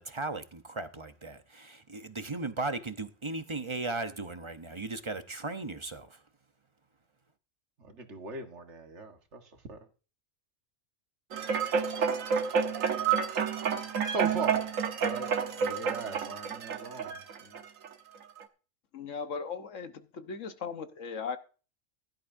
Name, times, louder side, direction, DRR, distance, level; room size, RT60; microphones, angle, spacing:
voice 1, 0.0-6.1, right 3 dB, 25° right, 0.8 m, -37 dB
voice 2, 7.8-9.4 9.7-9.8 14.1-14.6 15.0-15.3 15.6-17.6, right 3 dB, 60° right, 1.8 m, -39 dB
sound 1, 11.3-17.9 18.4-18.5, right 6 dB, 85° right, 1.5 m, -29 dB
voice 3, 18.9-21.4, left 5 dB, 75° left, 1.4 m, -38 dB
16.0 x 12.0 x 2.6 m
omnidirectional pair, 1.3 m